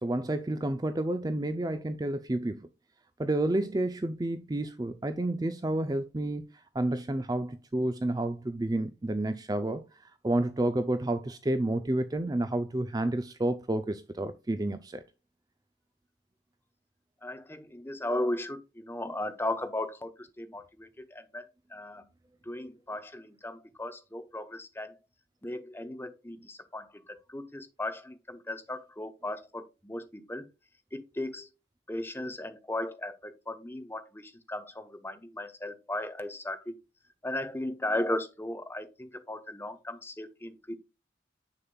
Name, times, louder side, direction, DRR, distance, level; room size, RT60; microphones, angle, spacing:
voice 1, 0.0-2.7 3.2-6.5 6.7-15.0, right 1 dB, 20° right, 0.4 m, -30 dB
voice 2, 17.2-20.1 20.4-21.4 21.7-22.0 22.5-24.9 25.4-30.5 30.9-31.5 31.9-36.7 37.2-40.8, left 1 dB, 10° left, 0.8 m, -36 dB
7.2 x 6.7 x 2.3 m
head